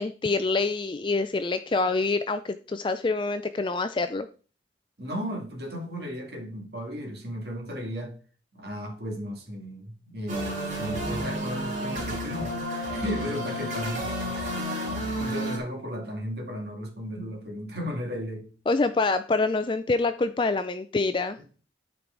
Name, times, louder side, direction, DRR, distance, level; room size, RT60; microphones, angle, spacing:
voice 1, 0.0-4.3 18.7-21.4, left 3 dB, 25° left, 0.3 m, -26 dB
voice 2, 5.0-8.1 8.5-14.1 14.3-14.6 14.9-18.5, equal, 55° right, 2.3 m, -35 dB
sound 1, 10.3-15.6, equal, 40° right, 3.0 m, -31 dB
12.5 x 4.7 x 3.9 m
head